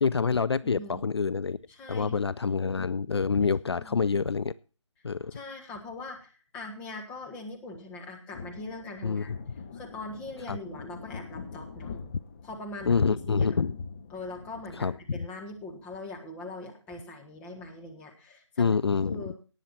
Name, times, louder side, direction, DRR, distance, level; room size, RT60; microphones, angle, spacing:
voice 1, 0.0-1.6 1.9-4.5 5.0-5.3 9.0-9.4 10.5-10.6 12.9-13.7 14.8-15.2 18.6-19.2, left 5 dB, 55° left, 18 dB, 0.5 m, -26 dB
voice 2, 0.6-1.0 1.7-2.2 3.4-4.0 5.3-9.3 9.7-12.0 12.4-13.5 14.1-19.3, left 2 dB, 10° left, 1 dB, 1.5 m, -42 dB
sound 1, 8.3-15.1, left 5 dB, 25° left, 1.8 m, -44 dB
18.0 x 7.1 x 4.3 m, 0.35 s
figure-of-eight pair, 165°, 16 cm